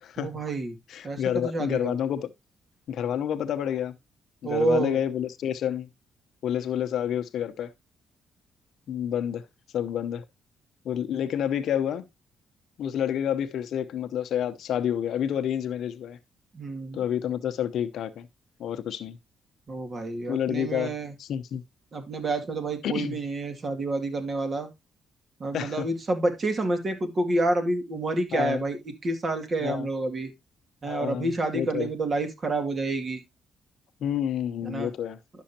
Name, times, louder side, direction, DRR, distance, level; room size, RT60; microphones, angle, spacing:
voice 1, 0.2-0.8 1.0-2.0 4.4-5.0 16.5-17.0 19.7-21.1 21.9-24.7 25.4-30.3 30.8-33.2 34.6-34.9, right 2 dB, 40° right, 2.3 m, -28 dB
voice 2, 0.9-2.3 2.9-3.9 4.4-5.9 6.4-7.7 8.9-9.4 9.7-10.2 10.8-12.0 12.8-16.2 16.9-18.3 18.6-19.2 20.3-20.9 21.2-21.6 22.8-23.2 25.5-25.8 28.3-28.6 29.6-29.9 30.8-31.9 34.0-35.2, left 9 dB, 70° left, 0.8 m, -29 dB
11.5 x 6.3 x 2.8 m
cardioid pair, 90°, 0 cm